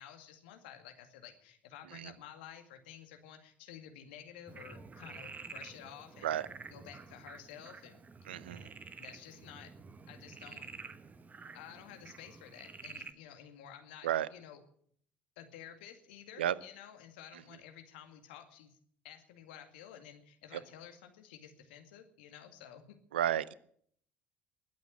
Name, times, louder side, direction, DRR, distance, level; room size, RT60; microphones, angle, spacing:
voice 1, 0.0-6.4 6.7-8.4 9.0-9.7 10.1-10.7 11.5-14.6 15.4-18.8 19.0-23.0, left 9 dB, 70° left, 6 dB, 2.1 m, -52 dB
Frog, 4.5-13.1, right 4 dB, 30° right, 1.2 m, -50 dB
voice 2, 8.3-8.7 14.0-14.3 16.4-16.5 23.1-23.5, right 11 dB, 80° right, 21 dB, 0.5 m, -32 dB
20.5 x 8.6 x 7.3 m, 0.62 s
figure-of-eight pair, 60°, 6 cm